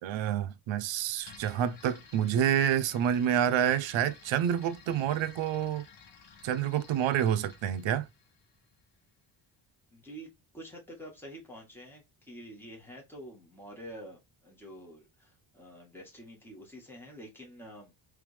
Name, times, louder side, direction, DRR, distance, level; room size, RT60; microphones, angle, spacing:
voice 1, 0.0-5.8 6.4-8.1, right 9 dB, 75° right, 0.7 m, -28 dB
sound 1, 1.2-9.0, left 6 dB, 60° left, 1.3 m, -55 dB
voice 2, 9.9-17.9, equal, 5° left, 1.6 m, -48 dB
3.5 x 3.4 x 3.3 m
cardioid pair, 120°, 47 cm